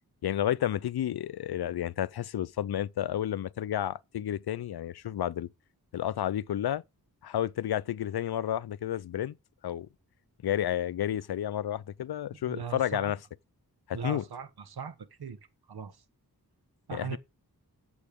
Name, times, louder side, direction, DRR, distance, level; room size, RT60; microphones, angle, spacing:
voice 1, 0.2-5.5 5.9-6.8 7.2-9.3 9.6-9.9 10.4-13.2 13.9-14.2 16.9-17.2, left 11 dB, 90° left, 0.5 m, -31 dB
voice 2, 12.5-13.1 13.9-15.4 15.7-16.0 16.9-17.2, right 7 dB, 85° right, 1.3 m, -39 dB
13.5 x 7.9 x 3.6 m
wide cardioid pair, 115°, 37 cm